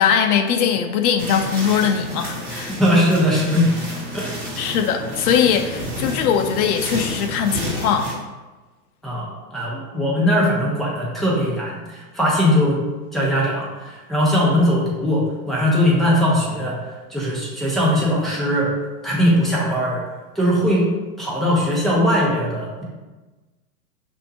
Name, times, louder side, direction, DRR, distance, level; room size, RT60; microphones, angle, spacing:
voice 1, 0.0-2.7 4.6-8.1, left 7 dB, 70° left, 6 dB, 0.6 m, -20 dB
sound 1, 1.2-8.1, equal, 25° right, 1.4 m, -31 dB
voice 2, 2.8-3.7 4.1-4.3 4.6-4.7 9.0-9.3 9.5-12.8 13.1-16.7 17.1-18.7 19.0-20.0 20.3-20.9 21.2-22.8, equal, ahead, -6 dB, 0.9 m, -20 dB
5.2 x 2.7 x 2.8 m, 1.2 s
hypercardioid pair, 120°, 47 cm